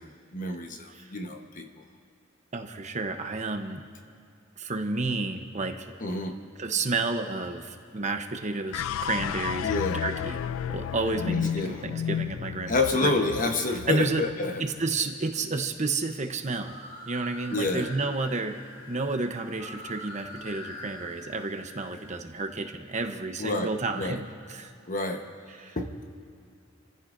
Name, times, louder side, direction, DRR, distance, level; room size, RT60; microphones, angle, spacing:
voice 1, 0.0-1.8 6.0-6.4 9.6-10.0 11.2-11.8 12.7-14.6 17.5-17.9 23.4-24.2 24.9-25.3 25.8-26.0, left 2 dB, 40° left, 4 dB, 1.2 m, -29 dB
voice 2, 2.5-3.8 4.6-5.9 6.6-9.7 9.9-11.5 11.8-12.7 13.0-13.3 13.9-14.2 14.6-16.8 17.1-18.6 18.9-24.2 24.5-24.7 25.6-25.8, right 3 dB, 35° right, 5 dB, 0.9 m, -31 dB
sound 1, 8.7-15.1, left 9 dB, 85° left, 0.3 m, -33 dB
sound 2, 16.5-22.3, left 1 dB, 60° left, 4.5 m, -44 dB
30.0 x 14.5 x 2.7 m, 2.4 s
head